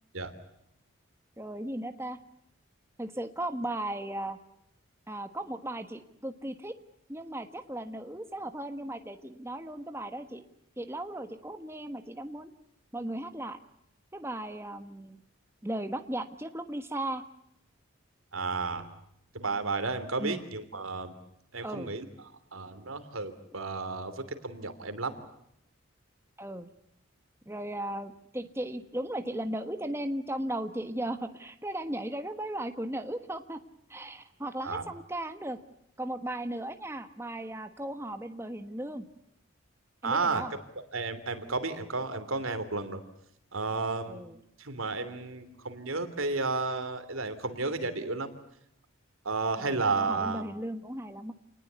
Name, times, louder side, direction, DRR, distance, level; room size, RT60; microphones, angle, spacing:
voice 1, 1.4-2.2 3.0-4.4 5.1-6.7 7.1-10.4 10.8-12.5 12.9-13.6 14.1-15.2 15.6-17.2 20.2-20.4 21.6-22.0 26.4-26.7 27.5-33.6 33.9-35.6 36.0-39.1 40.0-40.5 44.1-44.4 49.6-51.3, right 1 dB, 10° right, 8 dB, 1.3 m, -36 dB
voice 2, 18.3-18.9 19.3-21.2 21.5-22.1 22.5-25.1 34.6-34.9 40.0-40.6 40.9-43.0 43.5-44.2 44.6-48.3 49.2-50.5, right 3 dB, 80° right, 10 dB, 3.1 m, -32 dB
28.0 x 20.0 x 8.2 m, 0.79 s
head